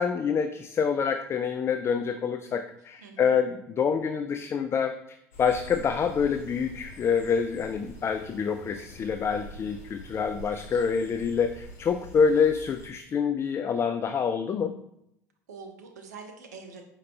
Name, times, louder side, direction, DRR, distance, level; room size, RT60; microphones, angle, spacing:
voice 1, 0.0-5.0 5.4-14.7, left 6 dB, 30° left, 8 dB, 0.3 m, -26 dB
voice 2, 3.0-3.4 10.1-10.8 15.5-16.8, right 4 dB, 80° right, 4 dB, 0.6 m, -46 dB
sound 1, 5.3-12.9, left 1 dB, 75° left, 1.0 m, -46 dB
4.9 x 2.9 x 3.3 m, 0.77 s
hypercardioid pair, 70°, 9 cm